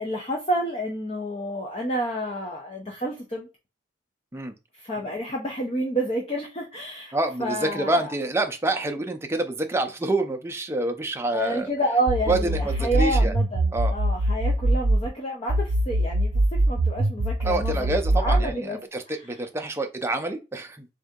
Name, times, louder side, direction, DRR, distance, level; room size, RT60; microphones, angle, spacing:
voice 1, 0.0-3.5 4.7-8.1 11.3-18.8 19.1-19.4, right 1 dB, 30° left, 0.6 m, -29 dB
voice 2, 7.1-11.7 12.3-13.3 13.7-13.9 17.4-20.9, right 2 dB, 15° right, 0.5 m, -27 dB
sound 1, 12.1-15.1 15.5-18.5, right 1 dB, 85° right, 0.6 m, -23 dB
3.7 x 2.7 x 3.6 m
head